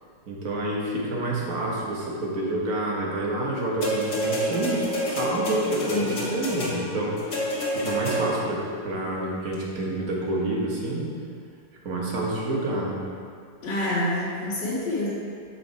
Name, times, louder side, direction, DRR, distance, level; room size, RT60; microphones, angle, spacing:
voice 1, 0.3-7.5 7.7-11.0 11.8-13.0, right 1 dB, 50° right, -3 dB, 1.5 m, -28 dB
sound 1, 3.8-8.6 9.5-9.6, equal, 45° left, 1.7 m, -28 dB
voice 2, 13.6-15.1, left 1 dB, 70° left, -11 dB, 2.1 m, -27 dB
6.3 x 5.9 x 4.5 m, 2.1 s
omnidirectional pair, 2.1 m